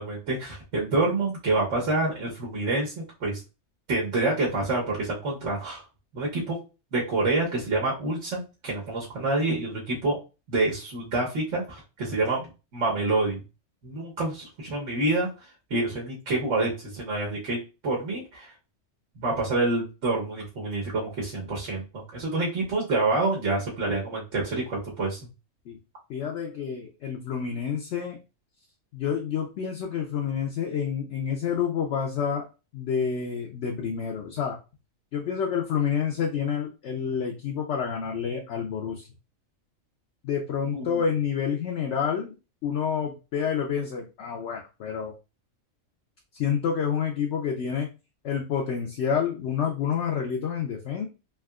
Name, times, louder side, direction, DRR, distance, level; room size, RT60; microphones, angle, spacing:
voice 1, 0.0-3.4 3.9-5.8 6.1-6.6 6.9-10.2 10.5-13.4 13.8-18.5 19.2-25.2 40.7-41.0, right 2 dB, 70° right, -3 dB, 1.3 m, -27 dB
voice 2, 26.1-28.2 28.9-32.4 32.7-34.6 35.1-39.1 40.2-42.3 42.6-45.1 46.3-47.9 48.2-51.1, left 7 dB, 65° left, 0 dB, 0.8 m, -28 dB
3.4 x 2.8 x 2.3 m, 0.30 s
omnidirectional pair, 1.3 m